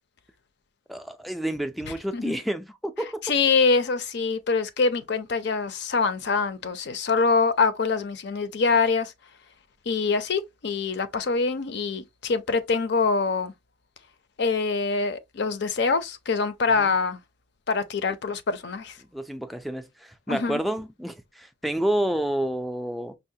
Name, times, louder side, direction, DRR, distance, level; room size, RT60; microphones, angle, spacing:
voice 1, 0.9-3.2 16.7-16.9 19.1-23.2, right 1 dB, ahead, 0.3 m, -29 dB
voice 2, 1.8-2.3 3.2-9.1 9.9-13.5 14.4-17.2 17.7-19.0 20.3-20.6, left 4 dB, 60° left, 0.5 m, -24 dB
5.4 x 2.1 x 2.7 m
head